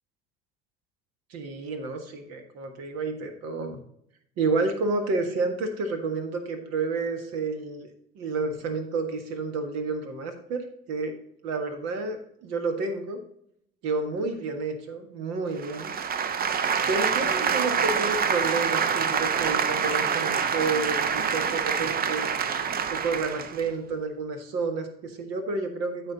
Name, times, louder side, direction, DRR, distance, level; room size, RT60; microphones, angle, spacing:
voice 1, 1.3-3.8 4.4-11.1 11.4-13.2 13.8-15.9 16.9-22.3 22.9-26.1, right 3 dB, 55° right, 7 dB, 1.6 m, -30 dB
sound 1, 15.6-23.6, right 6 dB, 30° right, 0.7 m, -26 dB
13.0 x 4.4 x 4.0 m, 0.72 s
figure-of-eight pair, 60°, 32 cm